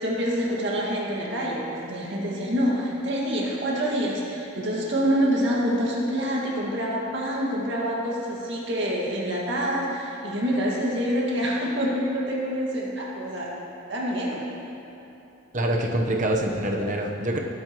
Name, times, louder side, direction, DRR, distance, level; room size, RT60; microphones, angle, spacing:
voice 1, 0.0-13.5 13.9-14.4, equal, 55° right, -4 dB, 2.1 m, -26 dB
voice 2, 15.5-17.4, right 1 dB, 35° right, 1 dB, 1.0 m, -25 dB
21.0 x 8.4 x 3.1 m, 2.9 s
head